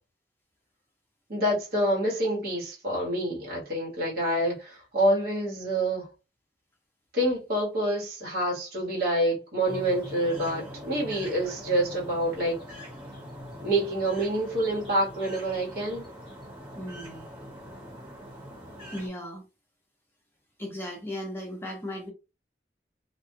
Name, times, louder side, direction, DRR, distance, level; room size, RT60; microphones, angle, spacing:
voice 1, 1.3-6.1 7.1-12.8 13.6-16.0, right 1 dB, 60° right, 1.4 m, -27 dB
sound 1, 9.7-19.1, equal, 30° right, 1.3 m, -43 dB
voice 2, 16.8-17.3 18.9-19.4 20.6-22.1, equal, 15° left, 0.7 m, -36 dB
2.5 x 2.3 x 2.8 m
head